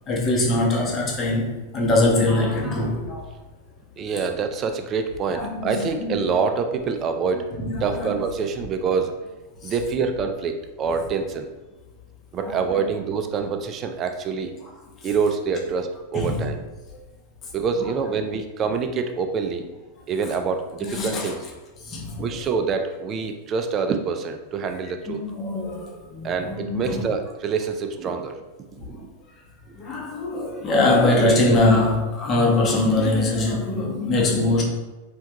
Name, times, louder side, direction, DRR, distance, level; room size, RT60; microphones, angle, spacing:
voice 1, 0.1-3.3 5.3-6.2 7.6-8.2 9.6-9.7 12.4-12.9 16.1-16.4 20.8-21.3 21.8-22.2 25.1-27.0 29.8-34.6, left 2 dB, 30° left, 0 dB, 0.8 m, -22 dB
voice 2, 4.0-7.5 7.8-9.2 9.6-11.5 12.3-14.5 15.0-16.6 17.5-19.6 20.1-21.4 22.2-25.2 26.2-28.4 28.7-29.1 29.7-29.8, right 5 dB, 30° right, 6 dB, 0.3 m, -26 dB
3.4 x 2.3 x 2.8 m, 1.2 s
supercardioid pair, 130°, 0 cm